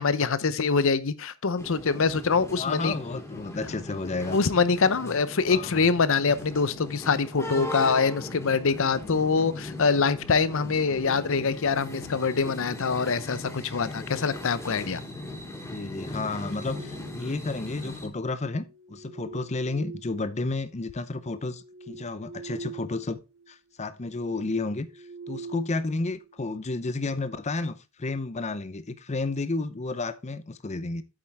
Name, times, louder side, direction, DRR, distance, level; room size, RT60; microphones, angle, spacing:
voice 1, 0.0-2.9 4.3-15.0, left 5 dB, 65° left, 0.7 m, -24 dB
sound 1, 1.6-18.1, left 2 dB, 10° left, 3.2 m, -38 dB
voice 2, 2.5-4.4 5.5-5.9 15.6-23.2 23.5-31.0, left 3 dB, 30° left, 0.6 m, -32 dB
sound 2, 16.0-17.5 18.5-20.6 21.1-23.0 23.3-23.5 24.0-26.4, right 4 dB, 75° right, 1.9 m, -45 dB
8.8 x 7.6 x 3.5 m
head